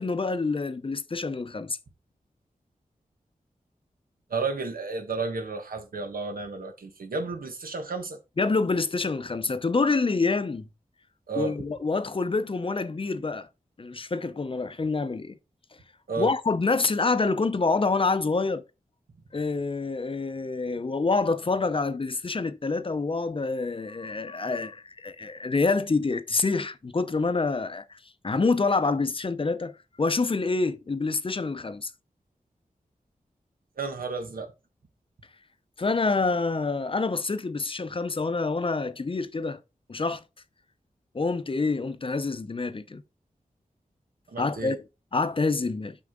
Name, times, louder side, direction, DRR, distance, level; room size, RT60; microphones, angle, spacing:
voice 1, 0.0-1.8 8.4-10.7 11.4-13.5 13.8-15.4 16.2-18.6 19.3-28.0 28.2-29.7 30.0-31.9 35.8-39.6 39.9-40.2 41.1-43.0 44.4-44.8 45.1-46.0, left 3 dB, 40° left, 0.7 m, -27 dB
voice 2, 4.3-8.2 11.3-11.6 16.1-16.3 33.8-34.5 44.3-44.8, right 4 dB, 85° right, 1.4 m, -32 dB
6.3 x 6.0 x 3.7 m
wide cardioid pair, 100°, 14 cm